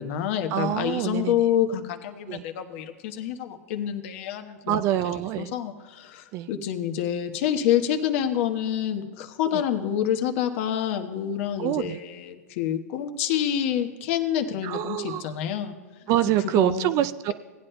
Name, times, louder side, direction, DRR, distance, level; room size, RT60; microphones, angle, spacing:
voice 1, 0.0-4.8 5.4-15.7 16.6-17.0, left 10 dB, 50° left, 6 dB, 1.1 m, -27 dB
voice 2, 0.5-1.5 2.3-2.4 4.6-5.5 6.3-6.5 9.5-9.6 11.6-12.0 14.6-15.3 16.1-17.3, right 12 dB, 35° right, 13 dB, 0.4 m, -26 dB
18.0 x 9.9 x 2.2 m, 1.4 s
hypercardioid pair, 110°, 9 cm